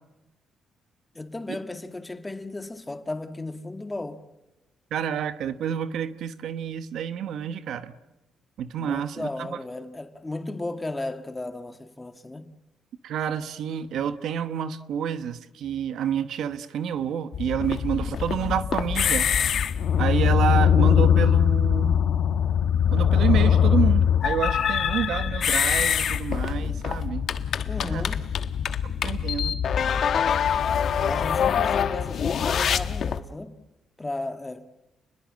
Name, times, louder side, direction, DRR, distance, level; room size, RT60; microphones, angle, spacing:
voice 1, 1.2-4.3 8.8-12.6 27.6-28.3 31.0-33.6 34.0-34.7, left 2 dB, 15° left, 1.8 m, -35 dB
voice 2, 4.9-7.9 8.6-9.6 13.0-19.3 20.0-22.0 22.9-27.3 27.8-28.0 28.8-29.6, right 8 dB, 75° right, 1.2 m, -29 dB
sound 1, 17.3-33.2, left 8 dB, 60° left, 1.2 m, -23 dB
30.0 x 21.5 x 7.5 m
cardioid pair, 90°, 0 cm